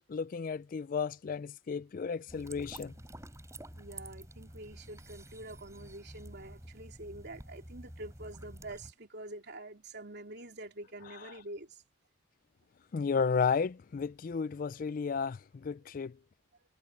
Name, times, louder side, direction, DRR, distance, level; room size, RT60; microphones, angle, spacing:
voice 1, 0.1-2.9 12.9-16.1, left 5 dB, 45° left, 0.3 m, -33 dB
sound 1, 2.3-8.9, right 1 dB, 15° right, 6.9 m, -49 dB
voice 2, 3.7-11.8 15.8-15.9, right 2 dB, 55° right, 3.4 m, -46 dB
head